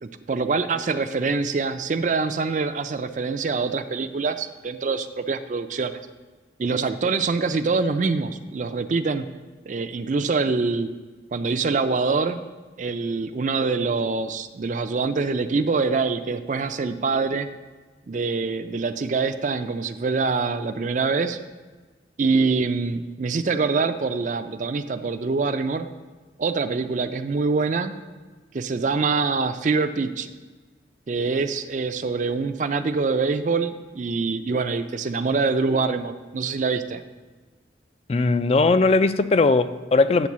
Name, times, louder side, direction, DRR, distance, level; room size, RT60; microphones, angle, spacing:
voice 1, 0.0-6.0 6.6-9.3 9.7-10.9 11.3-12.4 12.8-17.5 18.1-21.4 22.2-25.9 26.4-27.9 28.5-30.3 31.1-37.0, right 4 dB, 45° right, 0.4 m, -25 dB
voice 2, 38.1-40.3, left 3 dB, 35° left, 0.3 m, -19 dB
9.9 x 3.8 x 7.3 m
head